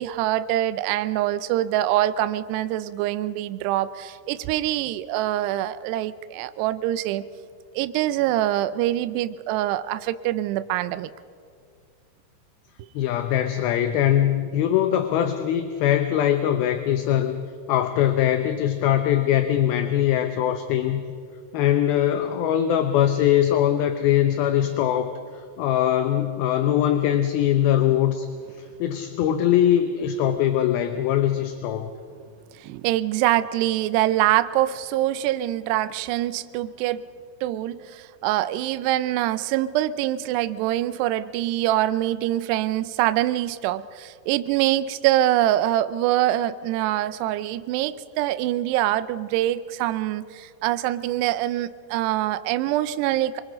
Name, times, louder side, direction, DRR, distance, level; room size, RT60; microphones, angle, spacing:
voice 1, 0.0-7.3 7.8-11.1 12.8-12.9 32.6-37.1 37.4-53.4, right 14 dB, 80° right, 13 dB, 2.7 m, -24 dB
voice 2, 13.0-17.4 17.7-21.0 21.5-25.2 25.6-28.3 28.8-31.9, left 11 dB, 75° left, 8 dB, 2.5 m, -21 dB
24.5 x 23.5 x 5.2 m, 2.2 s
omnidirectional pair, 4.9 m